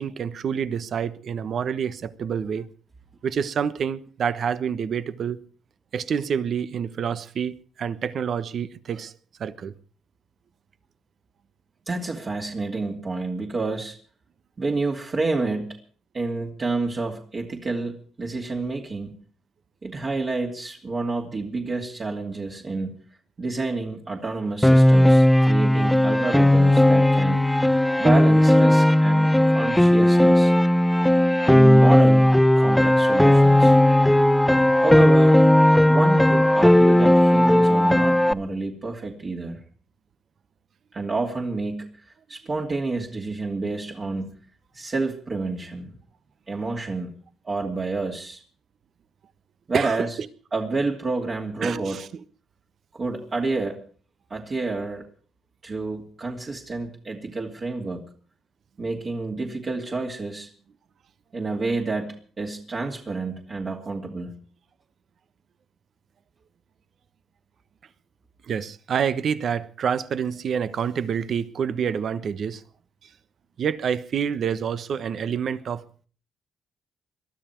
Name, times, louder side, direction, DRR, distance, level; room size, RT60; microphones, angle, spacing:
voice 1, 0.0-2.7 3.2-5.4 5.9-9.1 9.4-9.7 49.7-50.0 51.6-52.1 68.5-72.6 73.0-73.1 73.6-75.8, right 7 dB, 55° right, 1.1 m, -27 dB
voice 2, 11.9-14.0 14.6-15.8 16.1-19.2 19.8-22.9 23.4-27.4 28.0-30.5 31.4-33.8 34.8-35.4 35.8-39.6 40.9-41.9 42.3-44.3 44.7-46.0 46.5-47.2 47.4-48.4 49.7-50.1 50.5-52.0 52.9-53.8 54.3-55.0 55.6-58.1 58.8-60.5 61.3-64.4, right 3 dB, 40° right, 2.7 m, -29 dB
Piano, 24.6-38.3, left 1 dB, 5° left, 0.8 m, -16 dB
22.0 x 13.0 x 4.5 m
cardioid pair, 90°, 0 cm